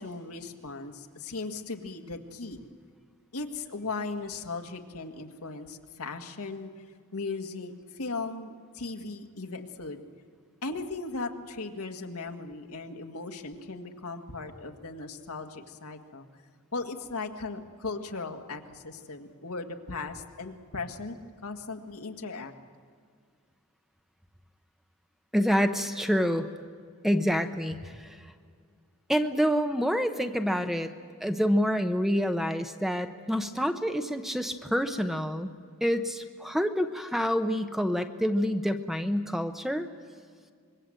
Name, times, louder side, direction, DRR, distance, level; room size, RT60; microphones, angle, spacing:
voice 1, 0.0-2.6 3.3-6.7 7.1-10.0 10.6-16.3 16.7-21.2 21.4-22.5, left 3 dB, 80° left, 4 dB, 1.8 m, -37 dB
voice 2, 25.3-26.5 27.0-28.2 29.1-30.9 31.2-35.5 35.8-39.9, equal, ahead, 7 dB, 0.8 m, -27 dB
25.5 x 22.5 x 7.8 m, 2.1 s
head